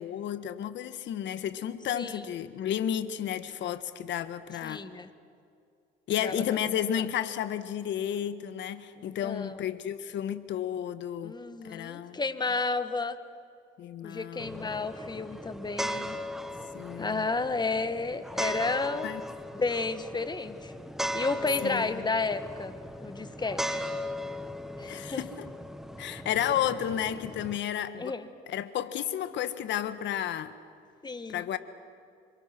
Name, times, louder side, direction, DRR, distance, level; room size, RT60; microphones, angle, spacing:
voice 1, 0.0-4.8 6.1-11.4 11.6-12.2 13.8-14.7 16.7-17.3 19.0-19.2 21.6-22.1 24.8-25.5 26.0-28.2 28.5-30.5 31.3-31.6, left 10 dB, 60° left, 12 dB, 1.5 m, -32 dB
voice 2, 4.6-5.1 6.2-6.4 9.0-9.6 11.2-13.2 14.0-16.2 17.0-19.1 19.5-20.7 21.1-22.8 23.0-23.8 24.8-25.2 28.0-28.3 31.0-31.5, left 3 dB, 20° left, 11 dB, 1.6 m, -32 dB
sound 1, 14.4-27.6, equal, ahead, 1.4 m, -38 dB
28.0 x 25.5 x 6.2 m, 2.5 s
supercardioid pair, 85°, 21 cm